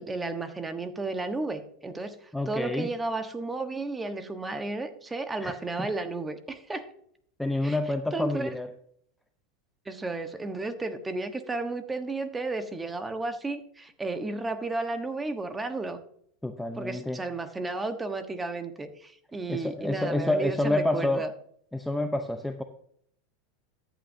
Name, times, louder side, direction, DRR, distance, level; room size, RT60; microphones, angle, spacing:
voice 1, 0.0-6.9 7.6-7.8 8.1-8.6 9.8-16.0 16.7-21.3, right 3 dB, 15° right, 8 dB, 1.2 m, -33 dB
voice 2, 2.3-2.9 5.4-5.9 7.4-8.7 16.4-17.2 19.5-21.2 21.7-22.6, left 1 dB, 5° left, 6 dB, 0.7 m, -28 dB
13.5 x 9.0 x 2.7 m, 0.66 s
supercardioid pair, 115°, 0 cm